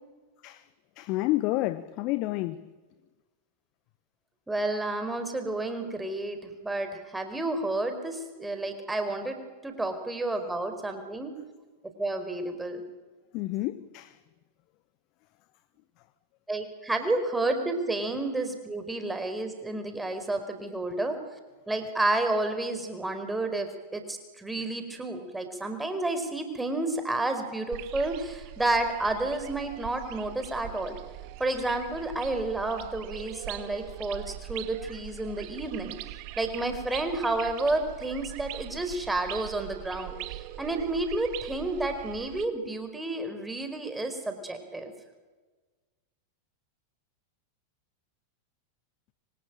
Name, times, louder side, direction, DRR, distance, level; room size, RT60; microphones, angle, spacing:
voice 1, 1.0-2.6 13.3-14.2, left 17 dB, 40° left, 1.1 m, -29 dB
voice 2, 4.5-6.4 6.6-9.4 9.6-11.3 12.0-12.8 16.5-21.2 21.7-31.0 31.4-35.9 36.4-40.1 40.6-44.9, right 2 dB, 5° right, 4.7 m, -30 dB
sound 1, 27.7-42.4, right 16 dB, 45° right, 1.6 m, -42 dB
26.0 x 25.0 x 9.0 m
figure-of-eight pair, 90°, 0 cm